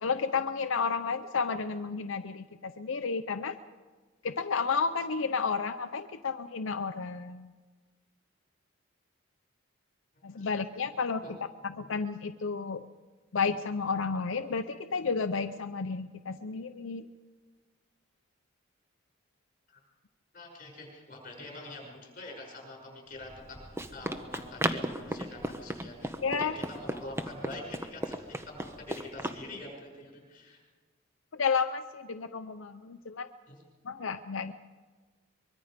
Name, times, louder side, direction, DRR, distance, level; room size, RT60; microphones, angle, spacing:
voice 1, 0.0-3.6 4.2-7.5 10.2-11.2 11.8-12.8 13.3-17.0 26.2-26.6 31.3-33.3 33.8-34.5, left 5 dB, 75° left, 8 dB, 0.7 m, -31 dB
voice 2, 20.3-28.1 28.5-30.6 33.5-33.6, left 2 dB, 40° left, 0 dB, 6.2 m, -45 dB
Run, 23.2-29.4, right 1 dB, 15° right, 0.9 m, -36 dB
23.5 x 22.5 x 5.1 m, 1.4 s
head